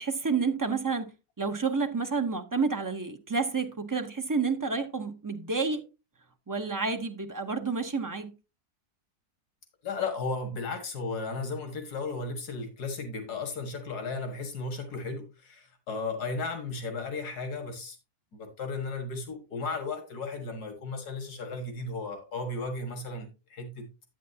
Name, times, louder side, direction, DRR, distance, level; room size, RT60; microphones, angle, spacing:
voice 1, 0.0-5.9 6.5-8.3, right 4 dB, 25° right, 0.4 m, -30 dB
voice 2, 9.8-18.0 18.3-23.9, left 3 dB, 85° left, 2.1 m, -35 dB
9.9 x 8.7 x 2.7 m
omnidirectional pair, 1.6 m